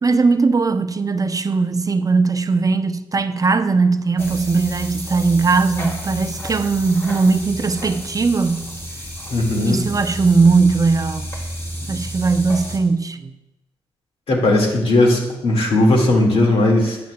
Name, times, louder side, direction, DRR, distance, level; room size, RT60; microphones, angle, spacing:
voice 1, 0.0-8.7 9.7-11.3 11.9-13.3, right 4 dB, 35° right, 0.5 m, -19 dB
sound 1, 4.2-12.8, equal, 25° left, 2.8 m, -31 dB
voice 2, 9.3-9.8 14.3-17.0, left 2 dB, 70° left, 1.9 m, -17 dB
9.4 x 9.1 x 2.2 m
supercardioid pair, 45°, 10 cm